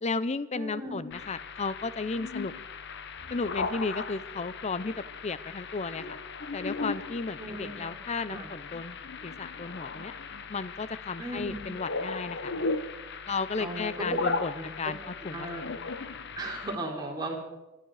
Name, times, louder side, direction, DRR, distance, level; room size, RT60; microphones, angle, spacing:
voice 1, 0.0-2.5 3.3-4.9 5.2-6.2 6.5-9.0 9.2-10.1 10.5-12.5 13.3-15.5, left 4 dB, 35° left, 16 dB, 0.6 m, -34 dB
voice 2, 0.5-1.1 7.4-8.0 8.3-8.5 11.2-11.6 13.6-14.2 14.5-14.9 15.3-15.6 16.3-17.4, right 1 dB, 20° right, -1 dB, 3.7 m, -37 dB
sound 1, 1.1-16.8, left 4 dB, 60° left, 1.0 m, -37 dB
23.5 x 12.0 x 4.9 m, 1.1 s
head